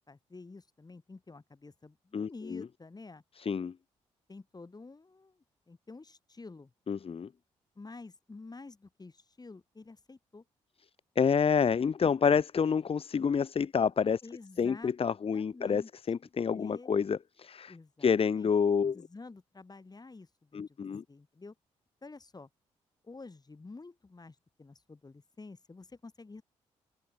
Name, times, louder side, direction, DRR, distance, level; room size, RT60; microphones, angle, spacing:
voice 1, 0.1-3.2 4.3-6.7 7.7-10.4 14.2-14.9 15.3-15.9 16.5-17.0 17.7-18.5 18.9-20.8 21.1-21.5 22.0-22.5 23.0-26.4, left 3 dB, 30° left, 5.1 m, -49 dB
voice 2, 2.1-2.7 3.4-3.7 6.9-7.3 11.2-14.2 14.6-17.7 18.0-19.0 20.5-21.0, left 6 dB, 45° left, 1.2 m, -28 dB
open air
supercardioid pair, 50°, 14 cm